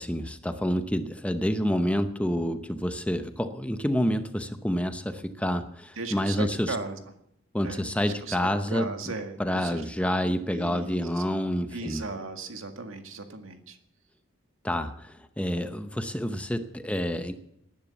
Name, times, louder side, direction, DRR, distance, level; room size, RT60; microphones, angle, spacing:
voice 1, 0.0-6.8 7.5-8.9 9.4-12.0 14.6-17.3, equal, 5° left, 8 dB, 0.8 m, -28 dB
voice 2, 6.0-7.0 7.6-9.8 10.5-11.2 11.7-13.8, right 3 dB, 75° right, 6 dB, 1.9 m, -37 dB
19.0 x 10.5 x 7.1 m, 0.77 s
head